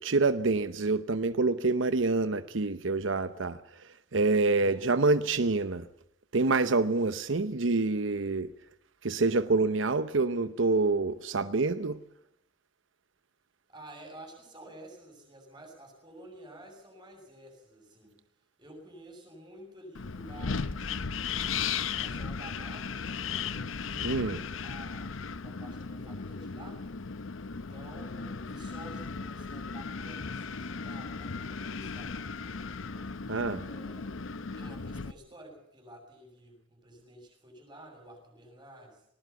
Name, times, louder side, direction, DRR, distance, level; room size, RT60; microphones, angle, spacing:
voice 1, 0.0-5.9 6.3-8.5 9.0-12.0 24.0-24.4 33.3-33.6, right 3 dB, 80° right, 0.8 m, -27 dB
voice 2, 4.5-4.9 13.7-18.2 18.6-21.5 22.0-24.3 24.6-26.9 27.5-33.1 33.6-34.2 34.5-39.1, right 1 dB, 20° right, 7.2 m, -51 dB
Wind, 19.9-35.1, left 5 dB, 90° left, 0.8 m, -36 dB
19.5 x 19.0 x 7.1 m
head